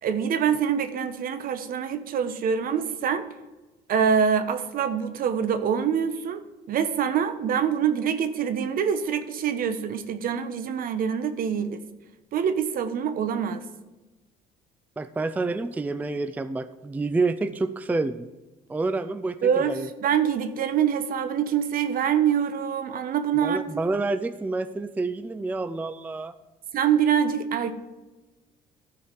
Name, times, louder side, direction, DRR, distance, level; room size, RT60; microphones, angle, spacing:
voice 1, 0.0-3.3 3.9-6.4 6.7-11.8 12.3-13.6 19.4-23.6 26.7-27.7, right 7 dB, 60° right, 10 dB, 0.9 m, -25 dB
voice 2, 15.0-18.3 18.7-19.9 23.4-26.3, right 3 dB, 10° right, 12 dB, 0.4 m, -28 dB
13.5 x 4.8 x 5.0 m, 1.1 s
cardioid pair, 110°, 17 cm